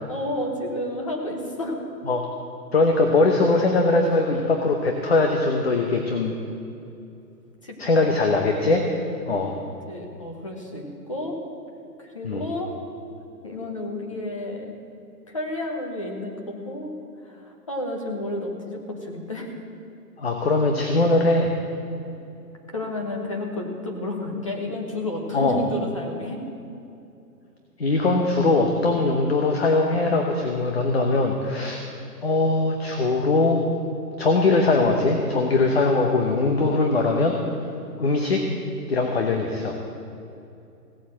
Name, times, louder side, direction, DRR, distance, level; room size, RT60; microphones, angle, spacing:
voice 1, 0.1-1.9 7.6-8.2 9.9-11.4 12.0-12.7 13.4-14.7 15.3-16.9 17.2-19.5 22.7-26.4, left 1 dB, 20° left, 1 dB, 1.0 m, -31 dB
voice 2, 2.7-6.4 7.8-8.9 9.3-9.5 12.2-12.5 20.2-21.5 25.3-25.6 27.8-31.8 32.2-33.7 34.2-37.4 38.0-38.4 38.9-39.8, left 3 dB, 40° left, 3 dB, 1.0 m, -21 dB
16.5 x 8.1 x 7.5 m, 2.7 s
hypercardioid pair, 180°, 49 cm